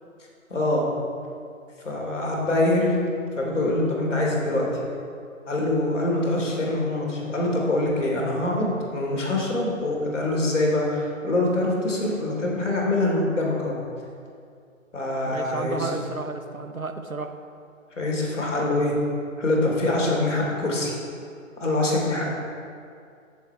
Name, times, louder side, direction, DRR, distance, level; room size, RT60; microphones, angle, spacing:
voice 1, 0.5-0.8 1.8-3.0 3.4-4.7 5.5-13.8 14.9-15.9 18.0-18.9 19.4-20.9 21.6-22.3, left 2 dB, 60° left, -2 dB, 3.3 m, -24 dB
voice 2, 15.3-17.3, right 3 dB, 90° right, 8 dB, 1.0 m, -32 dB
15.0 x 7.4 x 4.7 m, 2.4 s
figure-of-eight pair, 135°, 40 cm